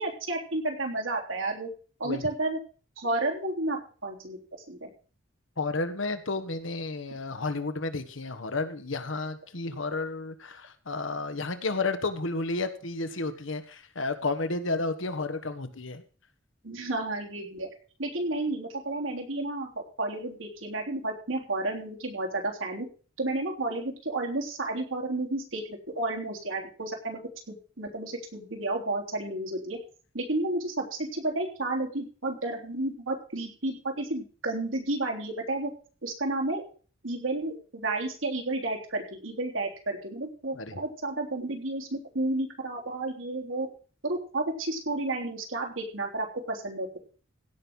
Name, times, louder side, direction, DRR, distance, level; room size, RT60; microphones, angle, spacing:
voice 1, 0.0-1.7 2.0-2.6 3.0-4.9 16.6-17.7 18.0-22.9 23.2-27.2 27.5-29.8 30.1-35.7 36.0-36.6 37.0-43.7 44.0-47.0, right 2 dB, 80° right, 1 dB, 3.5 m, -31 dB
voice 2, 5.6-16.0 40.5-40.7, left 3 dB, 80° left, 9 dB, 1.4 m, -32 dB
16.5 x 5.6 x 6.2 m, 0.39 s
head